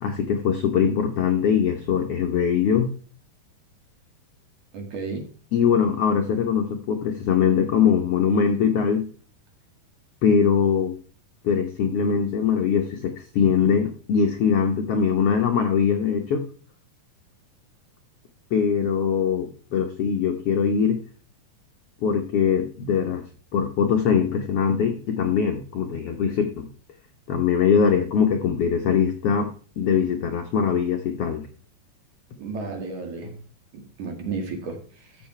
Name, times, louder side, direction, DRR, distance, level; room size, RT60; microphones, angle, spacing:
voice 1, 0.0-2.9 5.5-9.1 10.2-11.0 11.4-16.4 18.5-21.0 22.0-23.2 23.5-26.7 27.3-29.5 29.8-31.5, left 7 dB, 70° left, 3 dB, 1.4 m, -22 dB
voice 2, 4.7-5.2 12.0-12.1 32.4-33.4 33.7-35.3, right 4 dB, 60° right, 4 dB, 3.3 m, -33 dB
13.0 x 7.5 x 3.2 m, 0.42 s
omnidirectional pair, 4.1 m